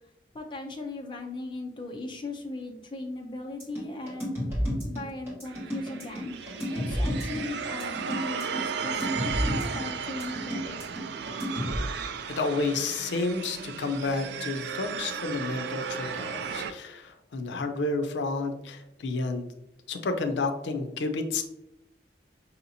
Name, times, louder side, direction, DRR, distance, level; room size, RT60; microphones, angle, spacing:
voice 1, 0.3-6.4 6.7-11.0, left 2 dB, 25° left, 2 dB, 0.5 m, -38 dB
sound 1, 3.6-11.8, equal, 15° right, 1.5 m, -31 dB
sound 2, 5.4-16.7, right 6 dB, 75° right, 0.3 m, -35 dB
voice 2, 12.3-19.5 19.9-21.4, left 3 dB, 90° left, 6 dB, 0.5 m, -30 dB
5.5 x 2.8 x 2.7 m, 0.86 s
head